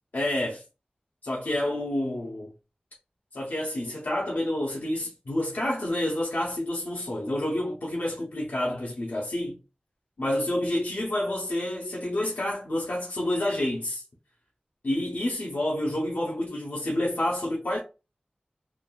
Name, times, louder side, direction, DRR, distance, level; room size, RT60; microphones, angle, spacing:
voice 1, 0.1-0.6 1.2-2.5 3.3-9.6 10.2-14.0 14.8-17.8, left 1 dB, 75° left, 0.8 m, -29 dB
3.4 x 2.3 x 2.4 m
wide cardioid pair, 70°, 3 cm